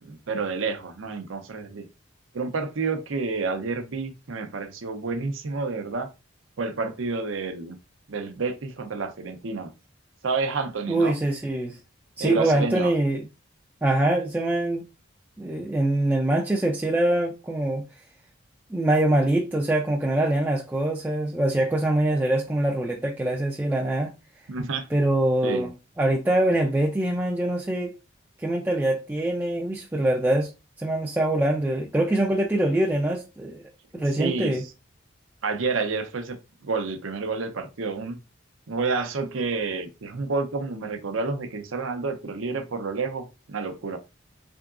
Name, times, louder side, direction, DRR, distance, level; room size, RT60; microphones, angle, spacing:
voice 1, 0.0-1.9 2.3-6.1 6.6-7.8 8.1-9.7 10.2-11.2 12.2-12.9 24.5-24.9 25.4-25.7 34.0-34.7 35.4-36.4 36.6-38.2 38.7-44.0, right 4 dB, 75° right, 0.6 m, -29 dB
voice 2, 10.9-11.8 12.2-13.2 13.8-14.8 15.4-17.8 18.7-24.1 24.9-25.7 26.0-27.9 28.4-30.5 30.8-34.6, right 1 dB, 10° right, 0.3 m, -24 dB
3.7 x 3.5 x 2.4 m
head